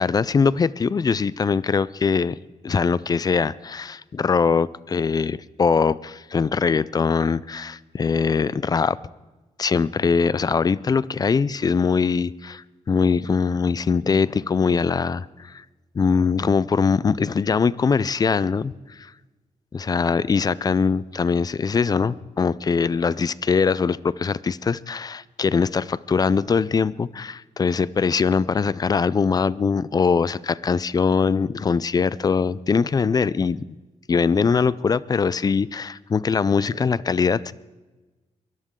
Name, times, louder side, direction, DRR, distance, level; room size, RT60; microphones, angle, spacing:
voice 1, 0.0-2.3 2.6-9.0 9.6-15.6 16.0-19.1 19.7-33.6 34.1-37.5, left 5 dB, 30° left, 19 dB, 0.5 m, -22 dB
22.5 x 14.0 x 3.8 m, 1.2 s
cardioid pair, 125°, 13 cm